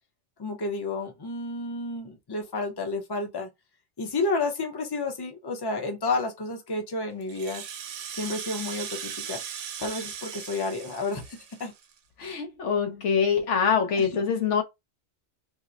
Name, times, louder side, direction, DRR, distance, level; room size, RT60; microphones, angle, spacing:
voice 1, 0.4-3.5 4.0-7.6 8.1-9.4 9.8-11.7 14.0-14.1, left 3 dB, 25° left, 0.6 m, -31 dB
Rattle (instrument), 7.2-12.0, right 8 dB, 90° right, 1.0 m, -38 dB
voice 2, 12.2-14.6, left 6 dB, 85° left, 1.1 m, -24 dB
4.3 x 2.0 x 2.5 m
omnidirectional pair, 1.2 m